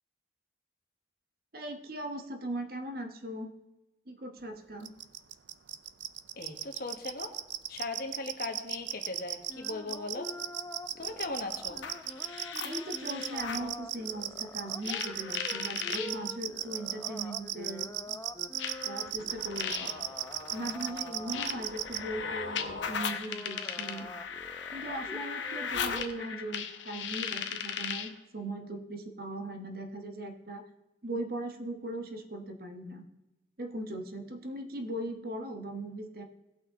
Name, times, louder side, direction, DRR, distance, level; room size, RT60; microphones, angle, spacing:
voice 1, 1.5-3.5 4.1-4.9 12.6-18.2 18.8-19.9 20.5-24.1 24.7-30.7 31.0-33.0 33.6-36.3, right 1 dB, 55° right, 5 dB, 1.2 m, -39 dB
sound 1, 4.9-22.0, right 13 dB, 85° right, 0.5 m, -35 dB
voice 2, 6.3-7.3 7.7-10.3 11.0-11.8, left 3 dB, 55° left, 4 dB, 1.2 m, -38 dB
sound 2, 9.5-26.0, left 1 dB, 15° left, 0.6 m, -46 dB
sound 3, 11.7-13.7 14.8-16.1 17.2-17.3 18.6-28.2, left 7 dB, 90° left, 0.9 m, -37 dB
17.5 x 5.8 x 3.7 m, 1.0 s
head